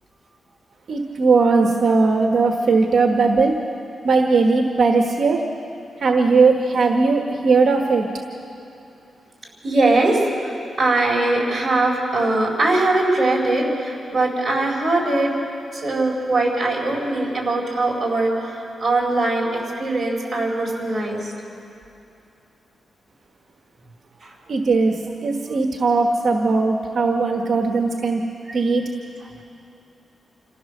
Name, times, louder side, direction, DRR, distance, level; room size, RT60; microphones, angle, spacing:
voice 1, 0.9-3.5 4.0-5.4 6.0-8.1 24.5-24.9 25.2-28.2 28.5-28.9, right 4 dB, 50° right, 3 dB, 1.2 m, -18 dB
voice 2, 9.6-15.3 15.7-21.3 24.2-24.3, right 2 dB, 20° right, -3 dB, 4.4 m, -21 dB
27.0 x 15.0 x 6.7 m, 2.7 s
wide cardioid pair, 160°, 0 cm